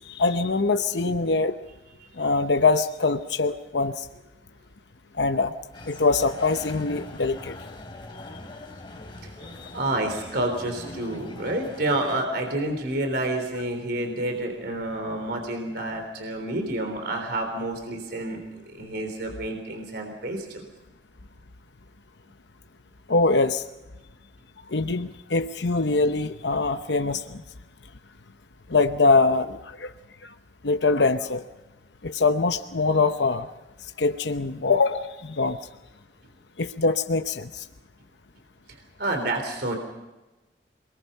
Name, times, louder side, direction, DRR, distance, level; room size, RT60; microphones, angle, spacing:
voice 1, 0.1-1.5 2.2-4.1 5.2-5.5 5.9-7.6 23.1-23.6 24.7-27.4 28.7-29.9 30.6-31.4 32.0-33.5 34.0-35.6 36.6-37.6, left 3 dB, 75° left, 8 dB, 0.9 m, -23 dB
sound 1, 5.7-12.3, left 2 dB, 30° left, 3.3 m, -42 dB
voice 2, 9.7-18.4 18.7-20.6 39.0-39.8, right 1 dB, 65° right, 4 dB, 3.7 m, -29 dB
28.0 x 21.5 x 5.6 m, 1.1 s
head